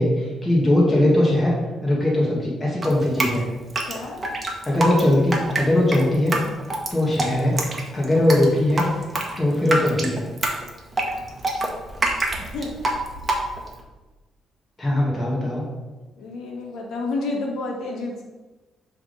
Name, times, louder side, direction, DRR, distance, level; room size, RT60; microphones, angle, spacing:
voice 1, 0.0-1.5 1.8-3.4 4.7-6.4 6.9-7.6 7.9-8.9 9.4-10.2 14.8-15.7, left 1 dB, 20° left, -4 dB, 1.5 m, -20 dB
Drip, 2.8-13.8, right 2 dB, 30° right, 1.0 m, -26 dB
voice 2, 3.9-4.2 12.4-12.7 16.2-18.2, left 3 dB, 75° left, 0 dB, 1.3 m, -30 dB
6.9 x 3.5 x 4.0 m, 1.2 s
cardioid pair, 90°, 0 cm